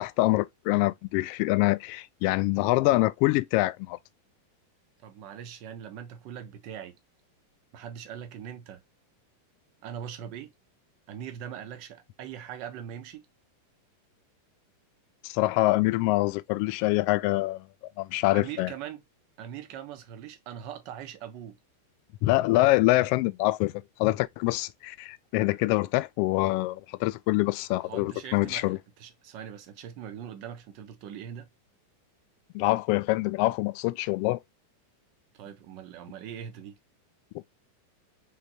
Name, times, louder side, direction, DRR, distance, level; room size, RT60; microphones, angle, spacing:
voice 1, 0.0-4.0 15.2-17.7 18.0-18.7 22.2-28.8 32.5-34.4, left 19 dB, 45° left, 0.3 m, -25 dB
voice 2, 5.0-7.0 7.7-8.8 9.8-10.5 11.1-13.3 18.3-19.0 19.4-21.6 27.8-31.5 35.3-36.8, right 9 dB, 45° right, 0.8 m, -41 dB
3.7 x 3.2 x 2.8 m
figure-of-eight pair, 90°, 0 cm